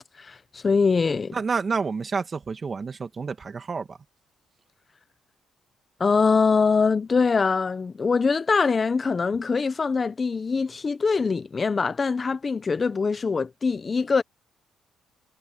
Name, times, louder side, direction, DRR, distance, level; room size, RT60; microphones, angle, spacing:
voice 1, 0.2-1.4 6.0-14.2, left 4 dB, 35° left, 0.8 m, -23 dB
voice 2, 1.3-4.0, right 5 dB, 40° right, 2.3 m, -29 dB
cardioid pair, 90°, 0 cm